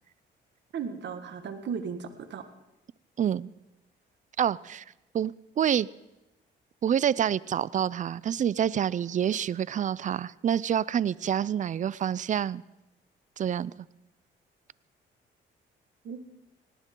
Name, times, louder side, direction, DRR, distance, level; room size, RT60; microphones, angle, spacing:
voice 1, 0.7-2.4 16.0-16.2, right 6 dB, 60° right, 8 dB, 1.6 m, -36 dB
voice 2, 3.2-3.5 4.4-4.8 5.1-5.9 6.8-12.6 13.4-13.7, right 9 dB, 40° right, 22 dB, 0.4 m, -27 dB
18.5 x 18.0 x 3.8 m, 0.95 s
cardioid pair, 90°, 20 cm